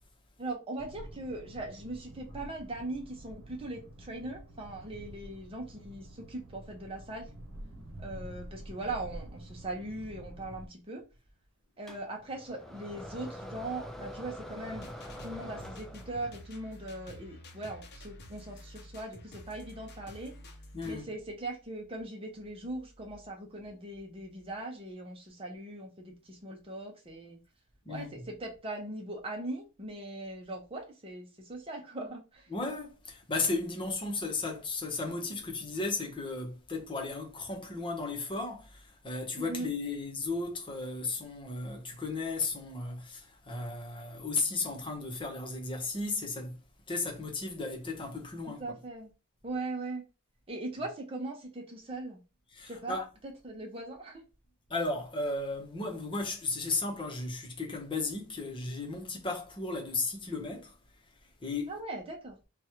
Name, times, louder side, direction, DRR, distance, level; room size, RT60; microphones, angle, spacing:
voice 1, 0.4-7.3 8.0-11.0 11.8-14.9 15.2-20.3 20.8-27.4 27.9-32.5 39.4-39.7 48.6-49.1 49.4-50.0 50.5-52.2 52.7-52.9 53.4-54.2 61.7-62.4, right 2 dB, 25° right, 0.9 m, -40 dB
sound 1, 0.8-10.7, right 1 dB, 80° right, 0.9 m, -48 dB
sound 2, 11.9-16.4, equal, ahead, 0.4 m, -44 dB
sound 3, 14.7-20.9, left 1 dB, 50° left, 0.8 m, -49 dB
voice 2, 20.7-21.1 27.8-28.2 32.5-46.6 46.9-48.8 52.5-53.1 54.7-60.8 61.4-61.7, left 3 dB, 25° left, 1.0 m, -35 dB
3.1 x 2.4 x 4.3 m
head